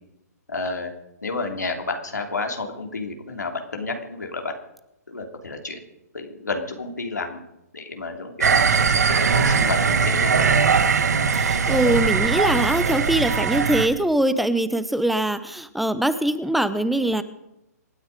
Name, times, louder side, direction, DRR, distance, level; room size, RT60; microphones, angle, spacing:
voice 1, 0.5-0.9 1.2-4.5 5.1-5.8 6.1-7.4 7.7-10.5, left 3 dB, 90° left, 3 dB, 3.2 m, -31 dB
sound 1, 8.4-13.9, right 5 dB, 75° right, 1.9 m, -20 dB
voice 2, 11.3-17.2, right 1 dB, ahead, 13 dB, 0.8 m, -22 dB
26.5 x 9.4 x 5.3 m, 0.88 s
hypercardioid pair, 140°, 9 cm